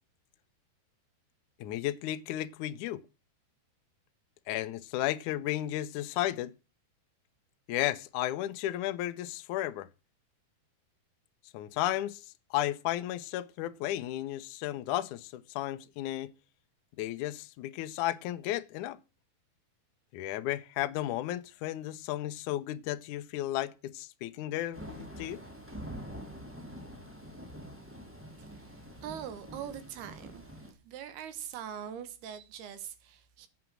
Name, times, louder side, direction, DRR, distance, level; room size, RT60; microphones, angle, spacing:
voice 1, 1.6-3.0 4.5-6.5 7.7-9.9 11.5-12.2 12.5-16.3 17.0-19.0 20.1-25.4, left 14 dB, 85° left, 1.7 m, -33 dB
Thunder / Rain, 24.7-30.7, equal, 5° right, 2.7 m, -46 dB
voice 2, 28.5-33.5, right 9 dB, 75° right, 3.1 m, -43 dB
14.0 x 8.4 x 6.0 m
omnidirectional pair, 4.7 m